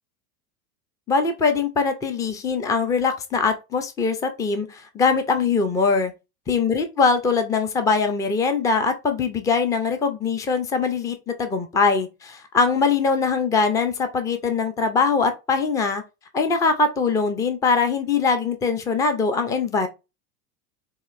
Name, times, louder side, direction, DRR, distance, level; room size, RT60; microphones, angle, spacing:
voice 1, 1.1-6.1 6.5-16.0 16.3-19.9, left 4 dB, 10° left, 0.3 m, -22 dB
4.2 x 2.7 x 2.4 m
hypercardioid pair, 95°, 47 cm